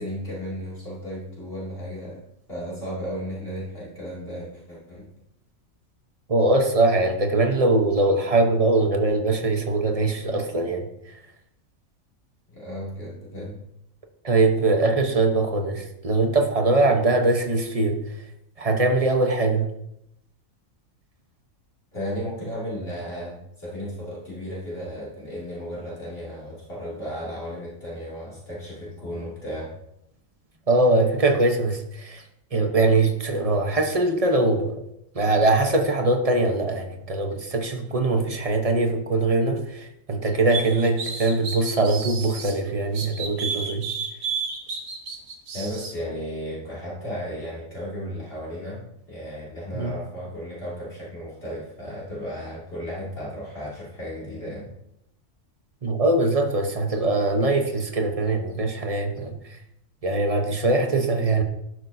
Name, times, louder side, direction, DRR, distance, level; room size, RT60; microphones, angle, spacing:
voice 1, 0.0-2.2 2.5-5.1 12.5-13.6 21.9-29.7 45.5-54.7, equal, 45° left, 2.9 m, -34 dB
voice 2, 6.3-11.2 14.2-18.0 18.6-19.7 30.7-32.2 32.5-34.8 35.1-43.8 49.7-49.9 55.8-59.6 60.0-61.4, right 2 dB, 30° right, 0.9 m, -22 dB
sound 1, 40.5-42.5 42.9-45.9, right 5 dB, 90° right, 1.6 m, -31 dB
12.0 x 6.2 x 2.7 m
omnidirectional pair, 1.4 m